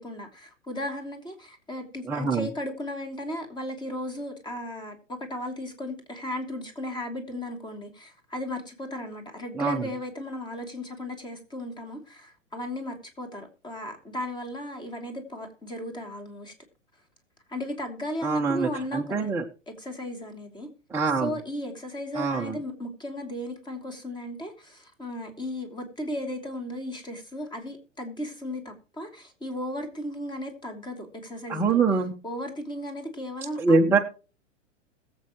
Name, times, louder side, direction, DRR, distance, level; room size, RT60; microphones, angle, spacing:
voice 1, 0.0-16.5 17.5-19.4 19.7-20.7 21.2-31.8 32.2-34.0, left 1 dB, 10° left, 2.8 m, -36 dB
voice 2, 2.1-2.5 9.5-9.8 18.2-19.4 20.9-21.3 22.1-22.6 31.5-32.1 33.6-34.0, right 4 dB, 5° right, 1.0 m, -24 dB
21.0 x 7.9 x 3.0 m
figure-of-eight pair, 100°, 37 cm